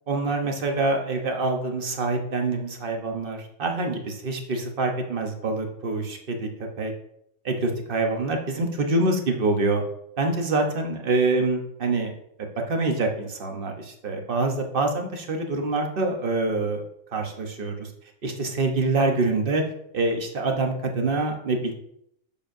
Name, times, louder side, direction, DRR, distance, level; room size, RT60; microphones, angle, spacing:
voice 1, 0.1-6.5 6.8-6.9 7.4-9.8 10.2-12.1 12.4-16.8 17.1-17.9 18.2-19.6 19.9-21.7, right 3 dB, 45° right, 3 dB, 1.1 m, -25 dB
7.0 x 7.0 x 2.6 m, 0.73 s
omnidirectional pair, 1.5 m